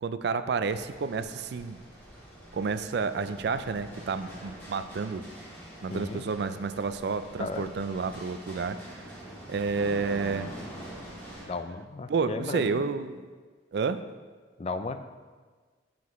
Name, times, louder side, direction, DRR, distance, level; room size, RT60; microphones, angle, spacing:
voice 1, 0.0-1.8 2.5-5.2 5.8-9.1 9.5-10.5 12.1-13.2 13.7-14.0, right 5 dB, 60° right, 11 dB, 0.3 m, -30 dB
sound 1, 0.6-11.4, equal, 10° left, 1.5 m, -45 dB
voice 2, 5.9-6.2 7.4-7.7 11.4-12.8 14.6-15.0, left 3 dB, 30° left, 9 dB, 0.3 m, -35 dB
9.5 x 6.0 x 3.1 m, 1.5 s
head